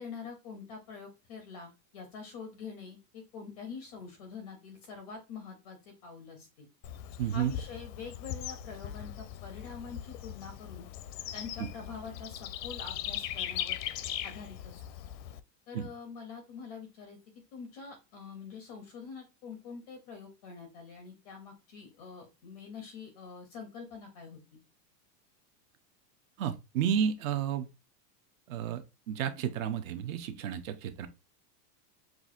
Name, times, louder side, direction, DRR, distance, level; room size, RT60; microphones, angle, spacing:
voice 1, 0.0-6.7 7.3-10.9 11.3-13.8 14.2-14.8 15.7-17.2 17.5-24.6, left 5 dB, 25° left, 0.4 m, -45 dB
Bird / Insect, 6.8-15.4, left 11 dB, 85° left, 0.6 m, -39 dB
voice 2, 7.2-7.5 11.6-11.7 15.7-15.9 26.4-27.7 28.5-31.1, right 9 dB, 55° right, 0.6 m, -32 dB
5.9 x 2.5 x 2.4 m
supercardioid pair, 170°, 48 cm